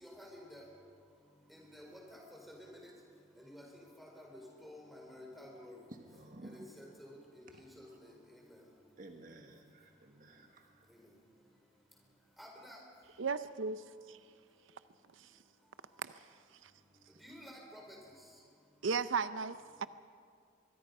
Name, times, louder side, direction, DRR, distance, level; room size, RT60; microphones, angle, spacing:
voice 1, 0.0-0.6 1.5-2.9 3.4-5.8 6.4-8.6 12.4-12.8 17.2-18.0, left 1 dB, ahead, -1 dB, 4.2 m, -52 dB
voice 2, 5.9-6.7 7.5-8.0 9.0-10.9, right 1 dB, 45° right, 4 dB, 1.4 m, -54 dB
voice 3, 13.2-13.8 14.1-14.2 16.0-16.2 16.6-16.7 18.8-19.9, right 5 dB, 90° right, 13 dB, 0.6 m, -35 dB
24.0 x 22.5 x 5.4 m, 2.2 s
head